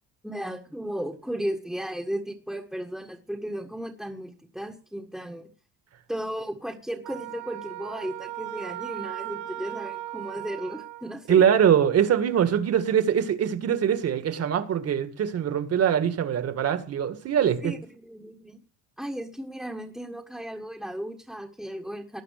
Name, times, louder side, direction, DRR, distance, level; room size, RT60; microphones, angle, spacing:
voice 1, 0.2-5.5 6.1-11.4 17.4-18.6 19.0-22.2, equal, ahead, 1.6 m, -35 dB
Wind instrument woodwind instrument, 7.0-11.2, right 14 dB, 85° right, 4.3 m, -37 dB
voice 2, 11.3-17.7, right 9 dB, 40° right, 2.1 m, -23 dB
19.5 x 11.0 x 6.7 m
cardioid pair, 150°, 37 cm